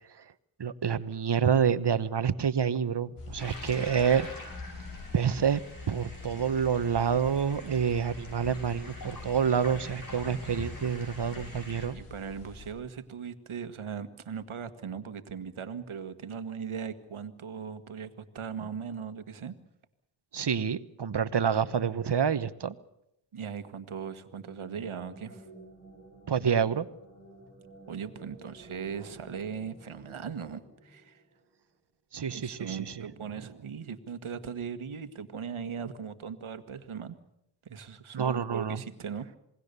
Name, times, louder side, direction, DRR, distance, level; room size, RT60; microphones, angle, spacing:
voice 1, 0.6-4.3 5.1-5.6 5.9-12.0 20.3-22.7 26.3-26.9 32.1-32.9 38.1-38.8, right 7 dB, 55° right, 14 dB, 1.2 m, -28 dB
sound 1, 3.2-12.7, left 3 dB, 85° left, 5.2 m, -45 dB
sound 2, 3.4-11.9, left 1 dB, 40° left, 7.0 m, -45 dB
voice 2, 11.9-19.5 23.3-25.5 27.9-31.2 32.3-37.2 37.6-39.3, right 7 dB, 80° right, 10 dB, 1.7 m, -39 dB
sound 3, 24.2-31.6, right 2 dB, 25° left, 7.7 m, -52 dB
27.5 x 20.0 x 6.9 m, 0.81 s
cardioid pair, 55°, 49 cm